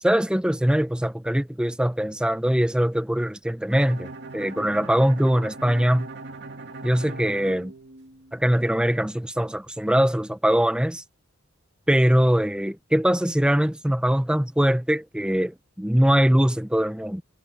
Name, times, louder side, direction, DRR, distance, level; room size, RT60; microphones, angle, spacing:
voice 1, 0.0-6.1 6.8-7.7 8.3-11.0 11.9-17.2, equal, 5° right, 0.6 m, -22 dB
Bowed string instrument, 3.7-8.5, right 3 dB, 60° right, 2.4 m, -40 dB
head